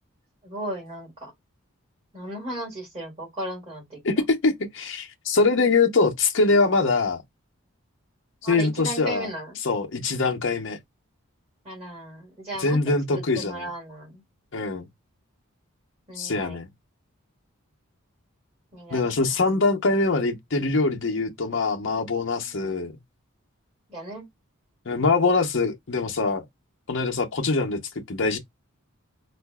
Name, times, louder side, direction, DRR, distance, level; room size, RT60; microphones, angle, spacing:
voice 1, 0.4-1.3 2.1-4.0 8.4-9.6 11.6-12.8 13.1-14.2 16.1-16.6 18.7-19.3 22.4-22.9 23.9-24.3, right 1 dB, 30° right, 2.1 m, -36 dB
voice 2, 4.0-7.2 8.4-9.3 9.6-10.8 12.6-13.7 14.5-14.9 16.2-16.7 18.9-22.9 24.9-26.4 26.9-27.8 28.1-28.4, left 3 dB, 55° left, 0.7 m, -23 dB
4.6 x 2.5 x 2.2 m
head